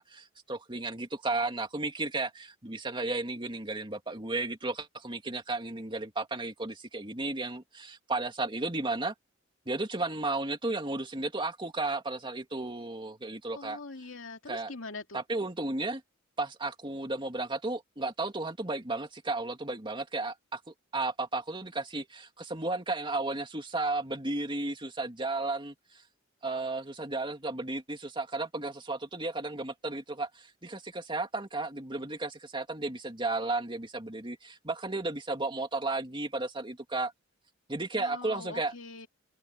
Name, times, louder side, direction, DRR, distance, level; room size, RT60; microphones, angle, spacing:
voice 1, 0.0-9.1 9.7-13.8 14.5-14.7 15.1-16.0 16.4-20.6 20.9-25.7 26.4-37.1 37.7-38.7, right 2 dB, 25° right, 2.6 m, -34 dB
voice 2, 13.5-15.2 37.9-39.1, left 3 dB, 80° left, 2.7 m, -43 dB
open air
head